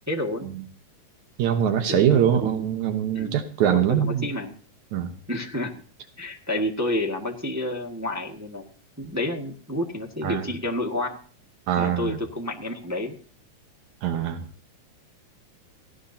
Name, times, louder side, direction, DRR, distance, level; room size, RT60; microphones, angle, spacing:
voice 1, 0.1-0.5 1.9-2.6 3.1-3.4 3.6-4.6 5.3-5.7 6.2-8.6 9.0-11.2 11.8-13.2, left 1 dB, 10° right, 0 dB, 1.1 m, -30 dB
voice 2, 1.4-4.3 4.9-5.2 10.2-10.4 11.7-12.2 14.0-14.5, right 9 dB, 80° right, 7 dB, 2.5 m, -23 dB
17.5 x 17.5 x 2.8 m, 0.39 s
omnidirectional pair, 3.4 m